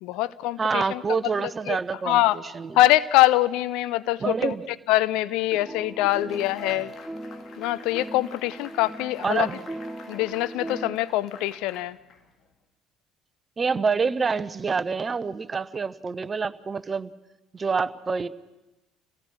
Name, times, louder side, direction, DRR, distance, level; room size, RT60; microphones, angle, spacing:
voice 1, 0.0-1.0 1.7-1.8 2.1-2.4 2.7-4.5 4.9-6.9 7.6-9.5 10.1-12.0, left 16 dB, 65° left, 17 dB, 0.6 m, -23 dB
voice 2, 0.6-2.8 4.2-4.7 5.7-5.8 6.7-6.8 9.2-9.6 13.6-17.1 17.5-18.3, right 5 dB, 30° right, 15 dB, 0.9 m, -27 dB
sound 1, 5.7-11.0, right 1 dB, ahead, 2.7 m, -39 dB
sound 2, 6.1-12.6, left 5 dB, 45° left, 2.0 m, -49 dB
27.5 x 17.0 x 6.3 m, 1.0 s
figure-of-eight pair, 55°, 0 cm